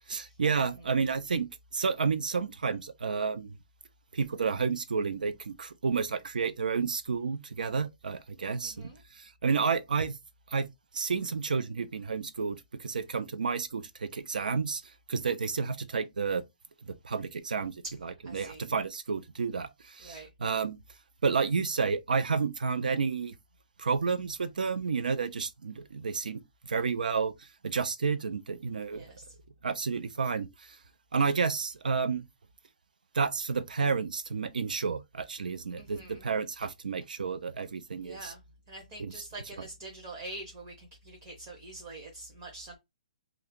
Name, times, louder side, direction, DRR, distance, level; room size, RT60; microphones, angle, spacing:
voice 1, 0.1-3.6 4.1-8.9 9.2-10.1 10.5-10.7 10.9-14.8 15.1-16.4 16.9-17.7 18.0-20.8 21.2-23.3 23.8-26.4 26.7-29.0 29.6-30.5 31.1-32.2 33.1-38.3 39.0-39.2, right 5 dB, 80° right, 0.5 m, -31 dB
voice 2, 8.6-9.0 18.2-18.6 20.0-20.3 28.9-29.3 35.8-36.2 38.0-38.4 38.7-42.8, right 2 dB, 20° right, 0.6 m, -45 dB
2.7 x 2.3 x 3.6 m
hypercardioid pair, 175°, 4 cm